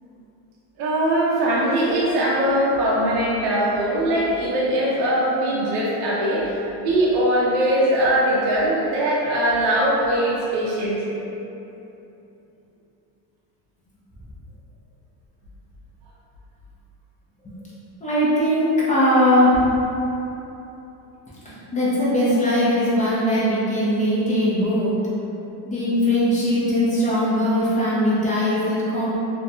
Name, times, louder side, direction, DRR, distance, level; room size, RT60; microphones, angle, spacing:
voice 1, 0.8-11.0, right 1 dB, 60° right, -6 dB, 0.6 m, -21 dB
voice 2, 18.0-19.6 21.4-24.9 25.7-29.2, equal, 15° left, -9 dB, 0.5 m, -20 dB
2.6 x 2.2 x 2.6 m, 3.0 s
cardioid pair, 125°, 49 cm